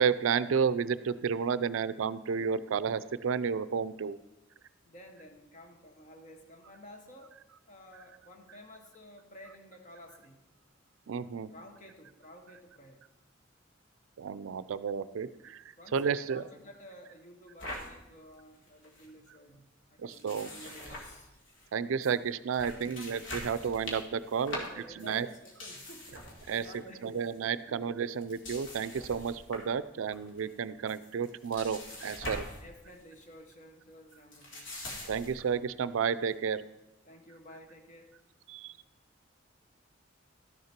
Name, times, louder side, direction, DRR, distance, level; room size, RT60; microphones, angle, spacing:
voice 1, 0.0-4.2 11.1-11.5 14.2-15.6 15.9-16.4 20.0-20.5 21.7-25.3 26.5-32.5 35.1-36.6 38.5-38.7, right 6 dB, 80° right, 15 dB, 0.4 m, -31 dB
voice 2, 4.8-7.4 7.7-10.4 11.5-13.1 15.8-21.3 22.9-23.2 24.5-26.2 26.5-27.0 27.7-27.9 32.6-34.8 37.0-38.2, left 1 dB, 40° left, 4 dB, 1.2 m, -52 dB
sound 1, 17.6-17.9 18.3-18.4 18.7-19.1 20.1-21.7 22.0-22.1 22.5-26.8 27.1-27.4 28.1-29.7 30.1-30.5 30.9-32.6 32.9-33.2 34.1-35.5, left 1 dB, 65° left, 1.9 m, -43 dB
12.0 x 6.6 x 4.4 m, 0.92 s
head